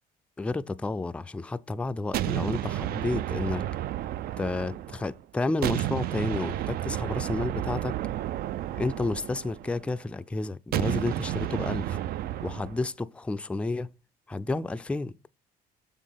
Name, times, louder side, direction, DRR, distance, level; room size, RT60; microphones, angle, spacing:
voice 1, 0.4-3.6 4.4-7.9 8.8-12.0 12.4-13.9 14.3-15.1, left 2 dB, 5° left, 0.3 m, -31 dB
sound 1, 2.1-5.2 5.6-9.9 10.7-12.8, right 13 dB, 65° right, 0.4 m, -31 dB
7.3 x 3.6 x 5.7 m
cardioid pair, 110°, 17 cm